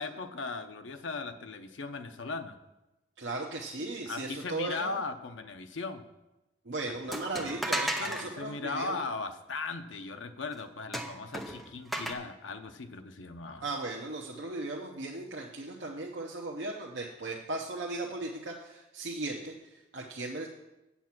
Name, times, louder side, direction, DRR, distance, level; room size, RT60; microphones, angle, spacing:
voice 1, 0.0-2.6 4.1-6.0 6.8-7.2 8.0-13.7, left 3 dB, 85° left, 8 dB, 0.7 m, -38 dB
voice 2, 3.2-4.9 6.7-9.0 13.6-20.5, right 2 dB, 70° right, -2 dB, 0.9 m, -37 dB
sound 1, 7.1-8.3 10.9-12.1, right 1 dB, ahead, 0.7 m, -34 dB
8.4 x 7.2 x 6.0 m, 1.0 s
head